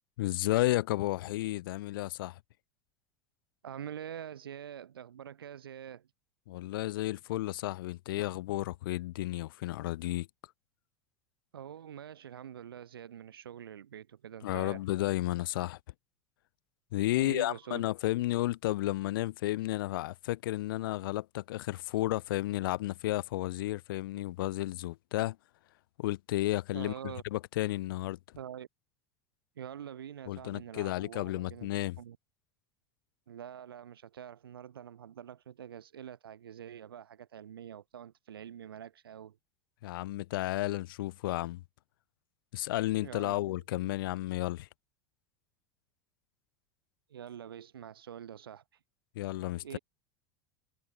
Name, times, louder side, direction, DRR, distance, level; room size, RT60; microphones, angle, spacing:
voice 1, 0.2-2.4 6.5-10.3 14.4-15.8 16.9-25.4 26.0-26.9 27.3-28.2 30.3-32.0 39.8-41.6 42.5-44.7 49.2-49.8, left 16 dB, 70° left, 0.5 m, -32 dB
voice 2, 3.6-6.1 11.5-14.8 17.1-17.8 26.7-27.2 28.4-28.7 29.6-31.7 32.0-32.2 33.3-39.4 43.0-43.6 47.1-48.6 49.6-49.8, right 9 dB, 80° right, 7.0 m, -45 dB
hypercardioid pair, 80°, 12 cm